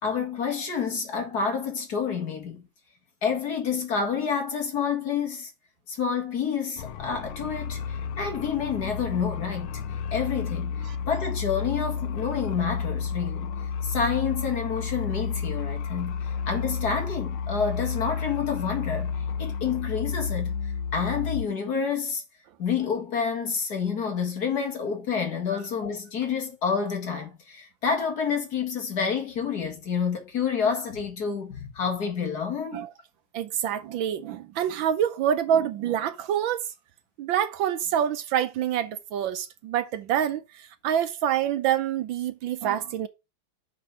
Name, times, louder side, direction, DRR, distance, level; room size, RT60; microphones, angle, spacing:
voice 1, 0.0-2.6 3.2-5.5 5.9-9.8 10.1-13.5 13.8-22.2 22.6-32.8, left 6 dB, 50° left, 2.3 m, -29 dB
sound 1, 6.8-21.5, left 6 dB, 80° left, 1.6 m, -31 dB
voice 2, 33.3-36.6 37.2-43.1, right 9 dB, 75° right, 1.3 m, -26 dB
6.3 x 5.9 x 5.6 m
omnidirectional pair, 2.3 m